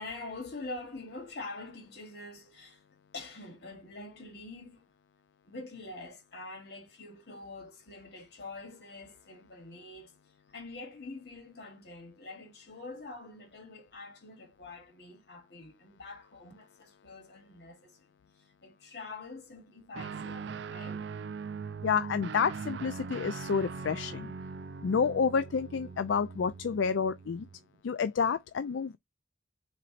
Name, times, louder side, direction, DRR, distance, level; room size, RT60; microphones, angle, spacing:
voice 1, 0.0-2.8 3.1-4.9 5.4-10.2 10.5-18.1 18.3-21.0, left 2 dB, 60° left, 2.4 m, -45 dB
Guitar, 19.9-27.6, right 5 dB, 70° right, 0.4 m, -41 dB
voice 2, 21.8-24.3 24.8-27.5 27.8-29.0, left 6 dB, 80° left, 0.4 m, -29 dB
4.4 x 4.0 x 2.4 m
head